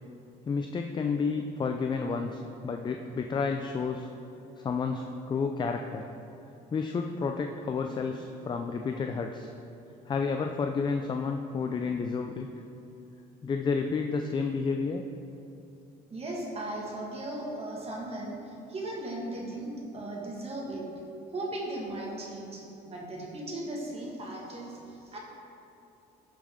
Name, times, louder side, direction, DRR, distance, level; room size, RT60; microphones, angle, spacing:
voice 1, 0.5-4.1 4.6-6.1 6.7-9.5 10.1-12.5 13.4-15.0, left 5 dB, 25° left, 5 dB, 0.4 m, -31 dB
voice 2, 16.1-20.9 21.3-25.2, right 1 dB, 35° right, -2 dB, 1.8 m, -37 dB
12.5 x 5.1 x 3.7 m, 2.7 s
cardioid pair, 110°, 17 cm